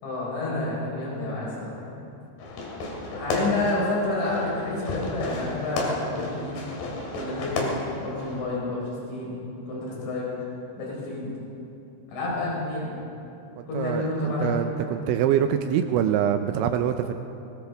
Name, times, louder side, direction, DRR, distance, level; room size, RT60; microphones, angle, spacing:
voice 1, 0.0-1.9 3.1-6.6 7.1-9.4 9.7-10.3 10.8-11.3 12.1-12.9 13.7-14.9, left 2 dB, 75° left, -5 dB, 6.8 m, -29 dB
Fireworks, 2.4-8.4, left 2 dB, 60° left, 3.9 m, -33 dB
voice 2, 13.6-17.1, right 9 dB, 80° right, 7 dB, 2.8 m, -25 dB
21.5 x 19.0 x 3.5 m, 2.8 s
omnidirectional pair, 5.6 m